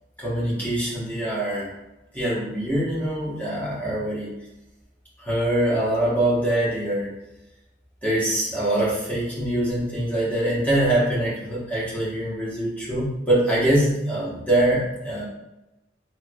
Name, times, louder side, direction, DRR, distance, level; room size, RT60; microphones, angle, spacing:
voice 1, 0.2-1.7 2.1-4.3 5.2-7.1 8.0-15.2, right 1 dB, 10° left, -8 dB, 1.1 m, -24 dB
3.3 x 3.0 x 2.2 m, 0.96 s
head